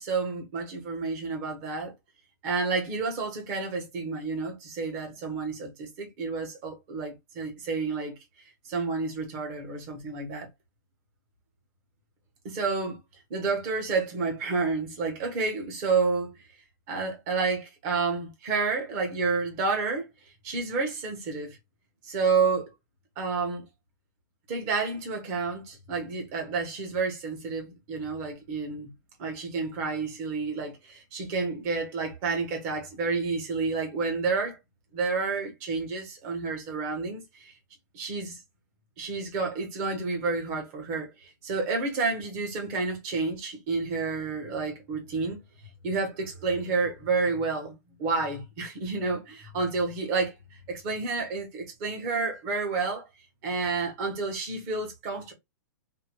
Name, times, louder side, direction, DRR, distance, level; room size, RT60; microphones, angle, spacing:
voice 1, 0.0-1.9 2.4-8.1 8.6-10.5 12.4-13.0 13.3-16.3 16.9-20.1 20.4-21.6 22.0-22.7 23.2-23.6 24.5-28.9 29.2-34.6 34.9-37.5 37.9-38.4 39.0-45.4 45.8-50.3 50.7-53.0 53.4-55.3, right 4 dB, 30° right, 1.0 m, -30 dB
2.7 x 2.2 x 3.0 m
hypercardioid pair, 175°, 11 cm